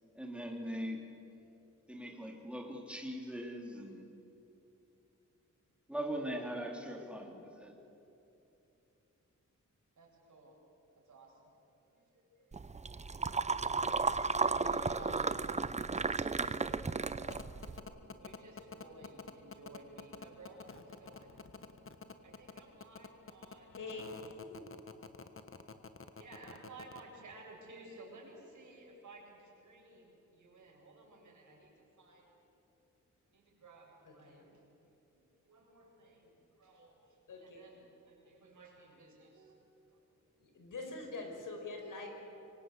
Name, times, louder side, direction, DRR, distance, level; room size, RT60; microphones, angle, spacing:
voice 1, 0.2-1.1 1.9-4.1 5.9-7.7, equal, 5° right, 1 dB, 3.4 m, -41 dB
voice 2, 10.0-10.6 11.0-12.8 13.4-17.7 18.0-21.3 22.2-24.2 26.2-32.3 33.3-34.8 35.1-36.3 36.6-39.6 39.9-40.0, right 2 dB, 70° right, -2 dB, 7.9 m, -56 dB
sound 1, 12.5-17.8, right 4 dB, 20° right, 0.6 m, -34 dB
sound 2, 17.3-27.0, left 5 dB, 40° left, 1.5 m, -48 dB
voice 3, 23.7-24.7 26.4-26.6 34.1-34.5 37.3-37.7 40.4-42.1, left 3 dB, 80° left, 3 dB, 5.2 m, -45 dB
26.5 x 24.0 x 8.4 m, 2.9 s
wide cardioid pair, 145°, 31 cm